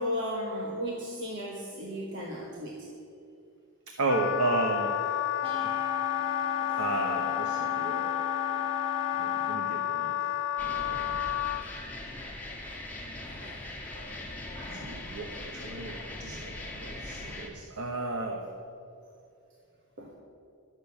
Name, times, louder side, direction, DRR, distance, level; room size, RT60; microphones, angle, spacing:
voice 1, 0.0-2.9 6.1-7.2 9.6-9.7 13.1-13.6 13.8-14.3 14.5-14.8 16.2-16.4 20.0-20.1, equal, 55° right, -2 dB, 1.3 m, -37 dB
voice 2, 3.9-5.2 5.6-5.7 6.7-8.2 9.2-10.2 10.6-11.2 13.9-14.1 14.7-18.5, right 2 dB, 80° right, 2 dB, 1.0 m, -34 dB
Wind instrument woodwind instrument, 4.1-11.6, left 11 dB, 55° left, 0.4 m, -30 dB
sound 1, 5.4-9.6, left 5 dB, 25° right, 1.9 m, -38 dB
sound 2, 10.6-17.5, left 2 dB, 5° left, 1.4 m, -40 dB
11.5 x 6.8 x 8.3 m, 2.5 s
head